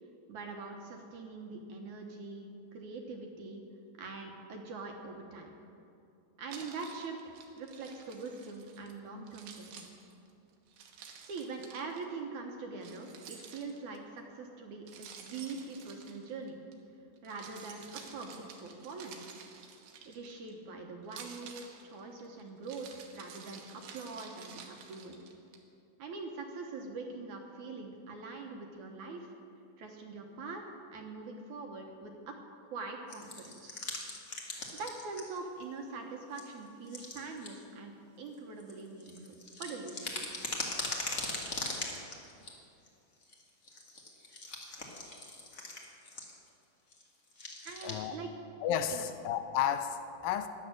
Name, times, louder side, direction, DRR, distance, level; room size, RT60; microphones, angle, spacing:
voice 1, 0.3-3.6 4.0-5.5 6.4-9.9 11.3-16.6 17.2-19.4 20.1-25.2 26.0-29.3 29.8-30.6 30.9-32.4 32.7-33.8 34.8-40.1 47.6-48.3 48.9-49.1, right 4 dB, 65° right, 2 dB, 2.1 m, -43 dB
Keys jangling, 6.5-8.9 9.3-12.0 12.8-14.0 14.9-16.7 17.2-20.5 21.0-25.6, right 6 dB, 90° right, 3.2 m, -51 dB
sound 1, 33.1-35.4 35.6-35.7 36.3-36.4 36.9-37.5 38.3-42.5 42.9-43.0 43.2-46.5 46.9-47.0 47.3-47.9, left 2 dB, 40° left, 1.0 m, -40 dB
voice 2, 47.8-48.2 48.6-50.5, left 9 dB, 80° left, 10 dB, 2.4 m, -32 dB
12.5 x 10.5 x 7.8 m, 2.7 s
omnidirectional pair, 4.2 m